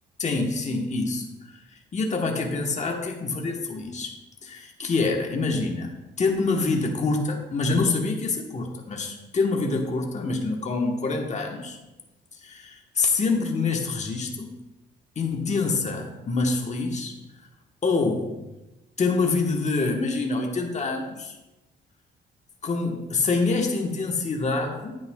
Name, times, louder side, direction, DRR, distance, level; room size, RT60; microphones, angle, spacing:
voice 1, 0.2-1.6 1.9-4.1 4.4-5.9 6.2-11.8 12.4-14.5 15.2-17.1 17.8-18.4 19.0-21.4 22.6-25.0, left 3 dB, 35° left, 2 dB, 1.2 m, -26 dB
9.3 x 8.9 x 2.3 m, 1.0 s
cardioid pair, 90°, 20 cm